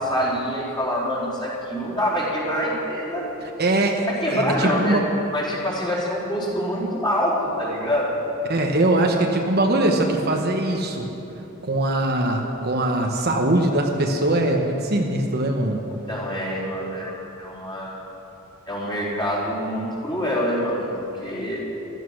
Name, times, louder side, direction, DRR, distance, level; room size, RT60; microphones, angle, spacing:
voice 1, 0.0-3.2 4.2-5.0 5.3-8.2 15.9-18.1 18.7-21.6, equal, 20° left, -6 dB, 4.1 m, -26 dB
voice 2, 3.6-5.1 8.5-11.1 11.6-15.8, right 1 dB, 50° right, 2 dB, 1.1 m, -21 dB
14.5 x 13.5 x 6.4 m, 3.0 s
head